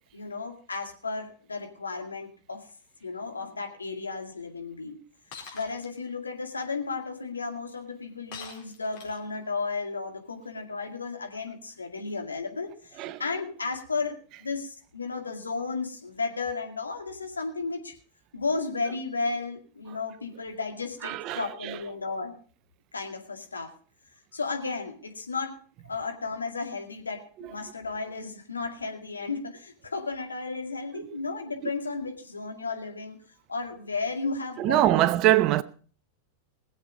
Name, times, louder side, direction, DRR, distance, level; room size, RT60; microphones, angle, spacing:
voice 1, 0.1-2.7 3.0-5.0 5.5-17.9 18.3-22.4 22.9-23.7 24.3-25.6 25.8-27.2 27.5-33.2 33.5-35.1, left 4 dB, 75° left, 2.1 m, -34 dB
Shatter, 5.3-5.9 8.3-9.3, left 6 dB, 45° left, 4.2 m, -43 dB
voice 2, 21.0-21.8 27.4-27.5 30.9-31.1 34.6-35.6, right 14 dB, 40° right, 0.7 m, -24 dB
20.5 x 7.9 x 5.3 m
figure-of-eight pair, 90°, 0 cm